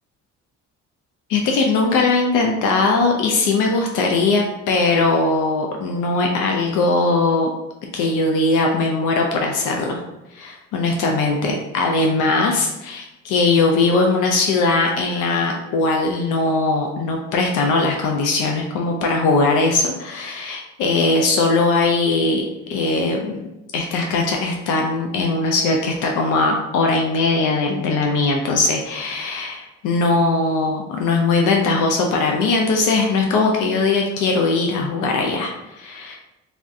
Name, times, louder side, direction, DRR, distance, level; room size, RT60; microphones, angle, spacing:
voice 1, 1.3-7.5 7.9-10.0 10.3-22.4 22.7-23.2 23.7-35.5 35.8-36.2, left 3 dB, 85° left, 1 dB, 0.5 m, -20 dB
3.4 x 2.4 x 2.6 m, 0.95 s
cardioid pair, 90°, 30 cm